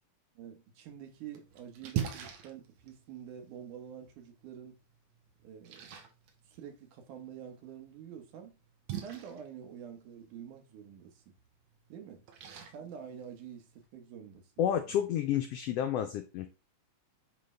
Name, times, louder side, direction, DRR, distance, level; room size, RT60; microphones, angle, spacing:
voice 1, 0.4-4.8 5.4-6.0 6.5-8.6 9.0-11.4 11.9-12.2 12.7-15.0, right 8 dB, 85° right, 2.7 m, -47 dB
Splash splatter, 0.9-13.9, right 9 dB, 70° right, 2.1 m, -45 dB
voice 2, 14.6-16.5, left 10 dB, 85° left, 1.3 m, -30 dB
9.3 x 3.5 x 3.2 m
omnidirectional pair, 3.5 m